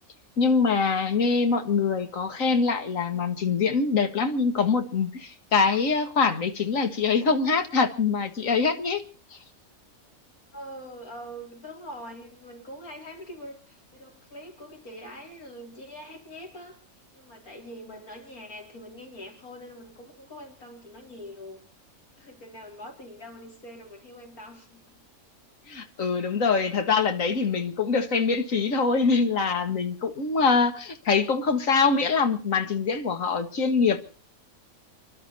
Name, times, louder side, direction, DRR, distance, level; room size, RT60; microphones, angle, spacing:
voice 1, 0.4-9.0 25.7-34.0, left 5 dB, 65° left, 2.1 m, -24 dB
voice 2, 10.5-16.8 17.1-21.6 22.2-25.0 25.7-25.9, equal, 80° left, 4.8 m, -43 dB
30.0 x 11.5 x 4.1 m
omnidirectional pair, 1.5 m